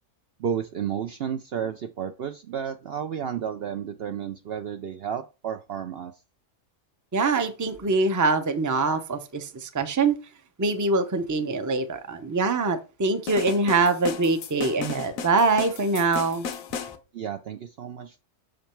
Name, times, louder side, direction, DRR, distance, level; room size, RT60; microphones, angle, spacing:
voice 1, 0.4-6.1 17.1-18.2, right 8 dB, 60° right, 7 dB, 0.7 m, -32 dB
voice 2, 7.1-10.1 10.6-16.5, right 3 dB, 20° right, 8 dB, 0.5 m, -24 dB
sound 1, 13.3-17.0, left 6 dB, 90° left, 1.2 m, -35 dB
6.3 x 5.2 x 4.4 m, 0.30 s
omnidirectional pair, 1.4 m